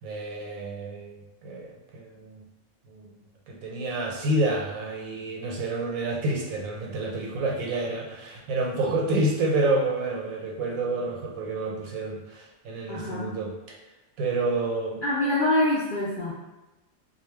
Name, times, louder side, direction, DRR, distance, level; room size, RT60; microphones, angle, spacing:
voice 1, 0.0-2.4 2.9-3.1 3.5-13.8 14.2-15.0, right 2 dB, 85° right, -1 dB, 1.0 m, -29 dB
voice 2, 12.9-13.3 15.0-16.3, left 1 dB, 65° left, -6 dB, 0.5 m, -25 dB
2.5 x 2.3 x 3.2 m, 1.0 s
omnidirectional pair, 1.5 m